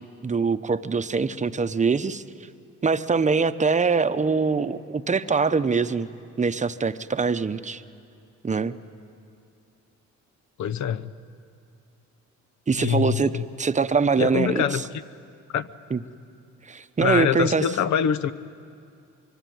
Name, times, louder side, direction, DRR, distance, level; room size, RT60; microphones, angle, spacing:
voice 1, 0.2-2.2 2.8-6.1 6.4-7.8 8.4-8.8 12.7-13.3 13.6-14.7 15.9-16.0 16.7-17.6, right 5 dB, 25° right, 11 dB, 0.8 m, -23 dB
voice 2, 10.6-11.1 12.8-13.5 14.2-15.0 15.5-15.7 17.0-18.3, left 9 dB, 70° left, 13 dB, 0.9 m, -24 dB
24.5 x 23.0 x 9.4 m, 2.5 s
cardioid pair, 90°, 30 cm